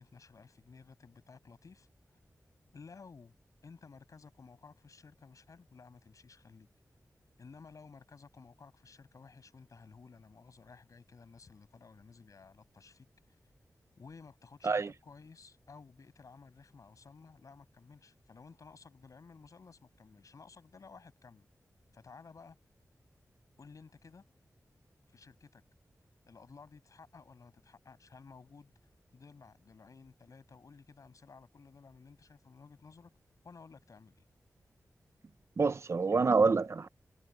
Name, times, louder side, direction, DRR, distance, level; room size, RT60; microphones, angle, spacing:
voice 1, 0.0-1.9 2.7-3.3 3.6-6.7 7.4-13.4 14.0-21.5 21.9-22.6 23.6-24.2 25.1-25.6 26.3-33.1 33.4-34.3, left 5 dB, 70° left, 7.2 m, -55 dB
voice 2, 35.6-36.9, right 4 dB, 50° right, 0.8 m, -27 dB
wide cardioid pair, 100°, 6 cm